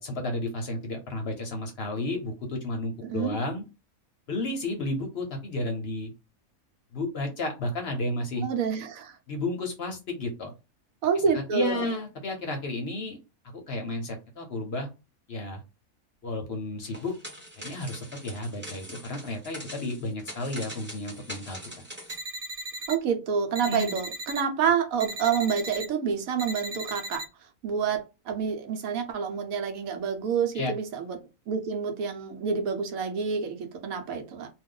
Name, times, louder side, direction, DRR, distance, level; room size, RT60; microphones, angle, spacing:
voice 1, 0.0-3.6 4.3-6.1 6.9-8.5 9.3-10.5 11.3-13.2 13.5-14.9 15.3-15.6 16.2-17.1 17.6-21.8 23.6-23.9 30.5-30.7, left 2 dB, 55° left, 0.8 m, -32 dB
voice 2, 3.0-3.4 8.4-9.2 11.0-11.9 22.9-27.2 27.6-31.2 31.5-34.5, right 6 dB, 75° right, 1.1 m, -28 dB
sound 1, 16.8-22.2, equal, 10° right, 0.9 m, -43 dB
sound 2, 22.1-23.0 23.5-24.4 25.0-25.9 26.4-27.2, right 1 dB, 55° right, 0.4 m, -37 dB
2.5 x 2.3 x 3.6 m
omnidirectional pair, 1.5 m